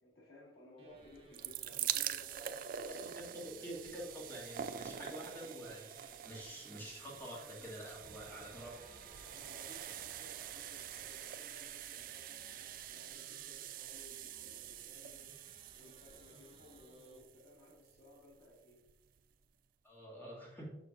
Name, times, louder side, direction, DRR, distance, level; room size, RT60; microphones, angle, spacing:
voice 1, 0.0-3.1 6.4-6.5 9.3-15.4 15.8-18.9, left 1 dB, 75° left, -5 dB, 1.9 m, -59 dB
sound 1, 0.8-17.2, right 1 dB, 30° right, 1.3 m, -64 dB
sound 2, 1.1-18.1 18.9-19.0 19.2-19.3, right 10 dB, 50° right, 0.3 m, -45 dB
voice 2, 2.8-9.0 19.8-20.8, equal, 15° left, -6 dB, 2.0 m, -48 dB
sound 3, 7.9-13.1, right 2 dB, 80° right, 1.4 m, -59 dB
6.5 x 6.4 x 2.5 m, 1.1 s
head